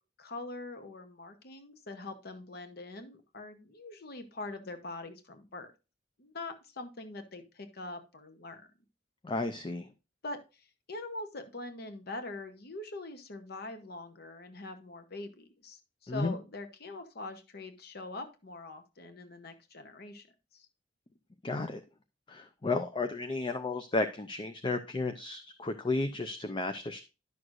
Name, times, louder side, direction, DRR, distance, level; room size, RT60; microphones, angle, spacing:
voice 1, 0.2-5.7 6.2-8.7 10.2-20.3 20.5-20.7, left 2 dB, 55° left, 8 dB, 0.9 m, -43 dB
voice 2, 9.2-9.9 16.1-16.3 21.4-21.8 22.3-27.0, left 2 dB, 25° left, 8 dB, 0.5 m, -33 dB
11.0 x 6.3 x 2.5 m, 0.29 s
head